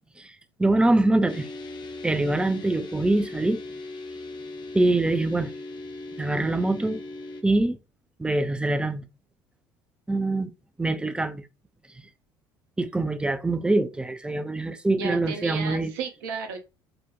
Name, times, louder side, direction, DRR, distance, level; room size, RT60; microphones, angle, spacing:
voice 1, 0.6-1.5 2.0-3.6 4.7-5.5 6.2-7.0 7.4-7.8 8.2-9.1 10.1-10.5 10.8-11.4 12.8-15.9, right 2 dB, 10° right, 0.4 m, -24 dB
sound 1, 1.3-7.4, left 2 dB, 40° left, 0.6 m, -38 dB
voice 2, 14.9-16.6, right 5 dB, 70° right, 0.8 m, -33 dB
2.8 x 2.1 x 3.6 m
hypercardioid pair, 65°, 12 cm